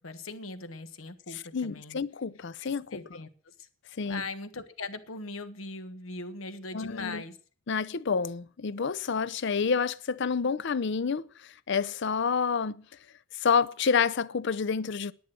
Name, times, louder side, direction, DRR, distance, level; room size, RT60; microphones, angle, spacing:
voice 1, 0.0-2.0 2.9-3.7 4.0-7.4, left 3 dB, 90° left, 1.3 m, -40 dB
voice 2, 1.5-3.0 4.0-4.3 6.7-7.2 7.7-11.2 11.7-12.8 13.4-15.1, left 5 dB, 60° left, 0.6 m, -28 dB
10.5 x 9.4 x 7.7 m
head